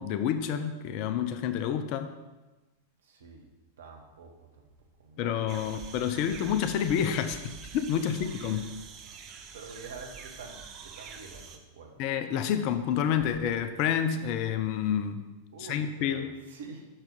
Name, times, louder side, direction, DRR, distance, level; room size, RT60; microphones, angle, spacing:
voice 1, 0.0-2.1 5.2-7.4 7.7-8.6 12.0-15.3 15.6-16.3, left 8 dB, 45° left, 9 dB, 0.5 m, -29 dB
voice 2, 3.0-3.5 3.8-4.7 5.0-5.8 6.1-6.4 8.3-8.4 9.5-12.0 13.2-13.4 15.5-16.9, right 4 dB, 65° right, 3 dB, 1.0 m, -47 dB
sound 1, 5.5-11.6, right 5 dB, 35° right, 0.6 m, -46 dB
5.9 x 5.6 x 5.2 m, 1.1 s
figure-of-eight pair, 90°, 0 cm